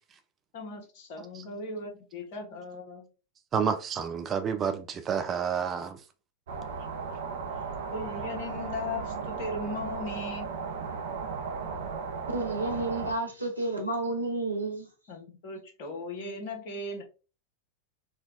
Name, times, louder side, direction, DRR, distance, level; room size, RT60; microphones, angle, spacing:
voice 1, 0.5-3.1 7.9-10.5 15.1-17.0, left 2 dB, 50° left, 1.0 m, -38 dB
voice 2, 3.5-6.0, right 7 dB, 25° right, 0.3 m, -29 dB
sound 1, 6.5-13.1, right 5 dB, 60° right, 0.7 m, -36 dB
voice 3, 12.3-14.9, right 2 dB, 90° right, 0.9 m, -31 dB
4.4 x 2.2 x 2.5 m
figure-of-eight pair, 90°, 0 cm